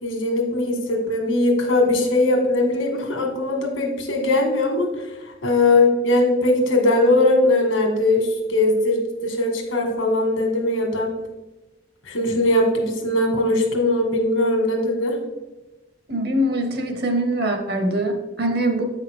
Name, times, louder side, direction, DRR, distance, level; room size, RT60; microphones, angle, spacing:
voice 1, 0.0-5.1 5.4-11.1 12.0-15.2, left 2 dB, 85° left, 2 dB, 1.7 m, -20 dB
voice 2, 16.1-18.8, right 1 dB, 50° right, 4 dB, 1.0 m, -23 dB
8.5 x 5.6 x 3.5 m, 1.1 s
head